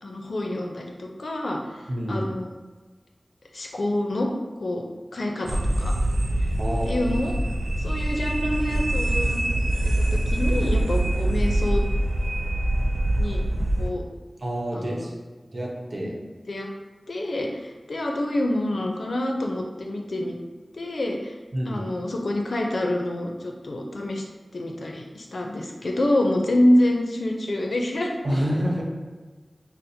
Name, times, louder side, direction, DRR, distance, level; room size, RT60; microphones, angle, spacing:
voice 1, 0.0-2.5 3.5-4.3 4.6-4.8 5.1-5.9 6.8-7.3 7.8-9.5 9.8-11.8 13.2-13.4 13.8-14.0 14.7-15.0 16.0-16.1 16.5-16.7 17.1-20.4 20.7-21.3 21.7-24.2 24.5-28.1, left 1 dB, 80° left, 1 dB, 0.5 m, -27 dB
voice 2, 1.9-2.3 6.6-7.1 11.3-11.5 14.4-15.2 15.5-16.2 21.5-21.9 28.2-28.8, equal, 55° right, -3 dB, 0.8 m, -28 dB
sound 1, 5.5-13.9, right 1 dB, 85° right, 0.3 m, -24 dB
5.7 x 2.0 x 2.7 m, 1.3 s
wide cardioid pair, 50°, 0 cm